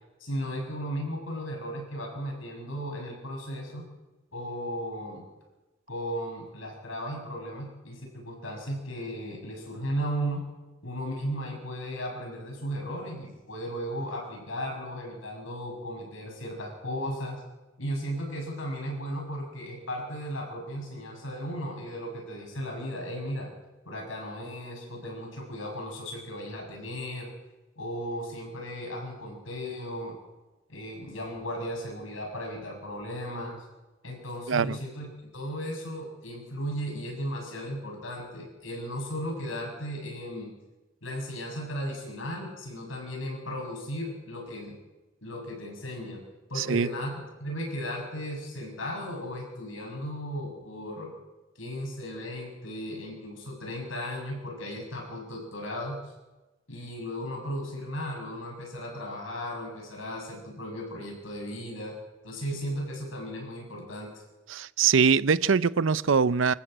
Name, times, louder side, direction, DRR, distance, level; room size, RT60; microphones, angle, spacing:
voice 1, 0.2-3.9 4.3-5.3 5.9-10.5 10.8-17.4 17.8-23.5 23.9-27.3 27.8-30.2 30.7-33.6 34.0-35.1 35.3-40.5 41.0-44.8 45.2-46.2 46.5-47.1 47.4-51.1 51.6-56.1 56.7-62.0 62.2-64.1, equal, 80° left, 7.0 m, -35 dB
voice 2, 46.6-46.9 64.5-66.5, right 6 dB, 75° right, 0.6 m, -23 dB
25.5 x 14.0 x 7.8 m
head